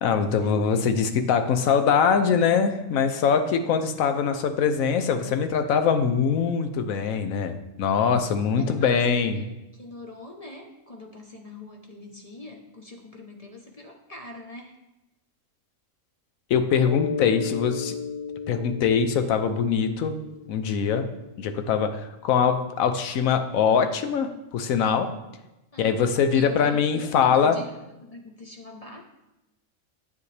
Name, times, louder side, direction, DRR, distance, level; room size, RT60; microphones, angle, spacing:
voice 1, 0.0-9.4 16.5-18.0 18.5-20.2 20.5-21.1 21.4-25.1 25.8-27.6, left 6 dB, 75° left, 8 dB, 1.1 m, -23 dB
voice 2, 8.6-14.8 25.7-26.0 26.3-27.7 28.0-29.0, left 2 dB, 35° left, 1 dB, 0.7 m, -42 dB
Mallet percussion, 16.9-21.3, left 6 dB, 55° left, 0.4 m, -34 dB
9.5 x 7.3 x 3.3 m, 0.96 s
omnidirectional pair, 1.5 m